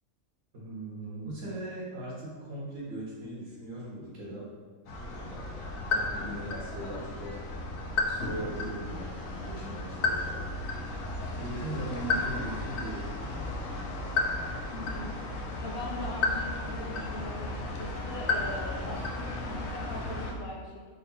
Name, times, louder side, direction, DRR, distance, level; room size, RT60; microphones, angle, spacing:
voice 1, 0.5-4.5 5.1-5.6 5.9-7.4 8.0-9.1 9.4-10.5 11.4-13.1, right 1 dB, 65° right, -6 dB, 1.6 m, -39 dB
sound 1, 4.9-20.3, left 2 dB, 75° left, 1.1 m, -33 dB
voice 2, 14.7-15.2 15.6-20.9, left 2 dB, 55° left, -2 dB, 0.9 m, -40 dB
3.7 x 3.4 x 4.2 m, 1.5 s
omnidirectional pair, 1.5 m